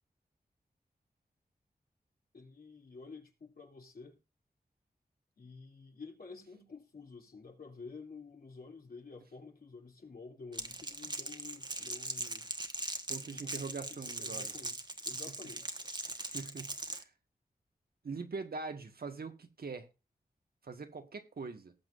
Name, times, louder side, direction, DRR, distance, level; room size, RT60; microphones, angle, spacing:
voice 1, 2.3-4.2 5.4-12.5 13.2-15.8, left 4 dB, 70° left, 3.1 m, -51 dB
Crackle, 10.5-17.0, right 2 dB, 25° right, 1.3 m, -40 dB
voice 2, 13.1-14.5 16.2-17.1 18.0-19.9 20.6-21.7, right 4 dB, 75° right, 1.6 m, -42 dB
19.0 x 7.4 x 2.6 m
wide cardioid pair, 75°, 16 cm